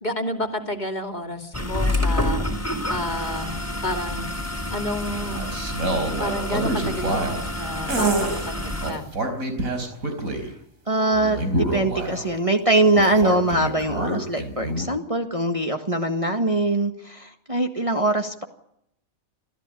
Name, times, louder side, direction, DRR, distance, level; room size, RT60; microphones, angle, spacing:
voice 1, 0.0-2.4 2.9-4.3 4.7-5.4 6.2-9.1, left 1 dB, 35° left, 5 dB, 2.8 m, -30 dB
sound 1, 1.5-8.9, left 1 dB, 10° left, 4.0 m, -28 dB
sound 2, 5.1-7.5 7.9-8.5 8.8-10.5 11.1-12.3 12.9-14.9, right 2 dB, 90° right, 4.8 m, -27 dB
voice 2, 10.9-18.4, right 2 dB, 25° right, 4 dB, 1.8 m, -22 dB
27.0 x 14.5 x 9.8 m, 0.76 s
omnidirectional pair, 1.4 m